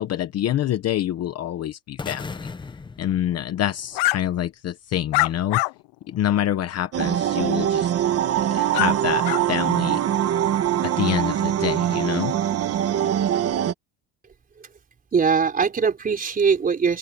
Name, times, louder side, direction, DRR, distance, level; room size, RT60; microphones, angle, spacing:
voice 1, 0.0-2.4 3.0-5.6 6.1-7.9 8.5-10.0 10.8-12.3, left 11 dB, 40° left, 1.0 m, -26 dB
sound 1, 2.0-4.1, left 4 dB, 10° left, 0.7 m, -37 dB
sound 2, 3.9-4.2 5.1-5.7 6.3-6.4 8.7-8.9 9.2-9.4, left 24 dB, 85° left, 0.5 m, -22 dB
sound 3, 6.9-13.7, right 10 dB, 35° right, 1.5 m, -23 dB
voice 2, 15.1-17.0, right 6 dB, 20° right, 4.4 m, -21 dB
open air
cardioid pair, 180°, 39 cm